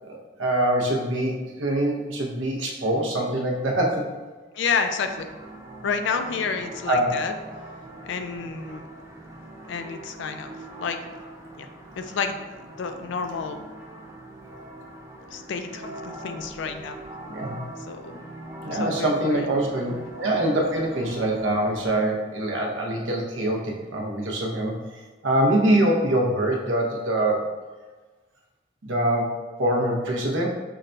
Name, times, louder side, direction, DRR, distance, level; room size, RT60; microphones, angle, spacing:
voice 1, 0.0-4.1 6.9-7.2 17.3-17.6 18.6-24.7 25.2-27.5 28.8-30.5, right 1 dB, 80° right, 0 dB, 0.7 m, -24 dB
voice 2, 4.5-5.3 5.8-7.3 8.0-8.8 9.7-10.5 10.8-11.0 11.6-11.7 12.0-12.4 12.8-13.6 15.3-17.0 17.8-18.2 18.7-19.5 19.9-20.0, left 5 dB, 70° left, 7 dB, 0.3 m, -29 dB
sound 1, 5.0-21.9, right 1 dB, 15° right, 0.4 m, -41 dB
5.6 x 2.2 x 2.5 m, 1.3 s
head